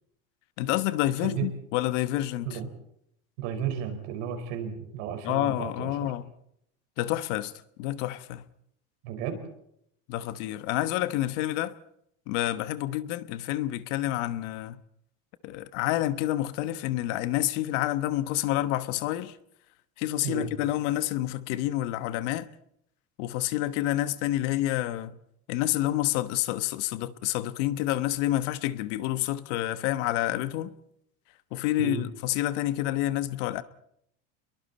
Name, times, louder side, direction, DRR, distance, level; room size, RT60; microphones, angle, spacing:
voice 1, 0.6-2.6 5.2-6.2 7.0-7.5 7.8-8.4 10.1-11.7 12.3-14.8 15.4-19.4 20.0-22.5 23.2-25.1 25.5-30.7 31.5-33.6, left 14 dB, 75° left, 1.3 m, -28 dB
voice 2, 3.4-6.1 9.0-9.4 20.2-20.6 31.8-32.0, right 9 dB, 80° right, 5.1 m, -33 dB
29.0 x 22.5 x 4.3 m
cardioid pair, 155°, 36 cm